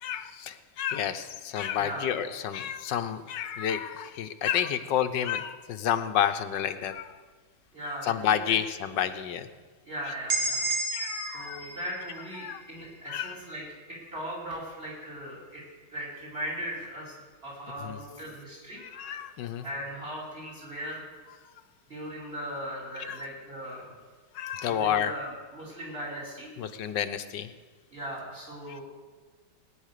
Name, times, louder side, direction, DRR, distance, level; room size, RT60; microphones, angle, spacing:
voice 1, 0.0-7.2 8.0-9.5 10.9-11.6 12.4-12.6 13.1-13.3 17.8-18.0 18.8-19.6 23.1-23.2 24.3-25.1 26.6-27.5 28.7-28.8, left 9 dB, 75° left, 10 dB, 1.5 m, -30 dB
voice 2, 1.7-2.1 7.7-8.6 9.8-10.8 11.3-15.6 15.9-17.1 17.4-19.2 19.6-21.0 21.9-23.9 24.7-26.5 27.9-28.8, equal, 30° right, -3 dB, 5.8 m, -38 dB
sound 1, 10.3-14.1, right 2 dB, 65° right, 2.6 m, -33 dB
19.0 x 10.0 x 6.6 m, 1.4 s
omnidirectional pair, 2.0 m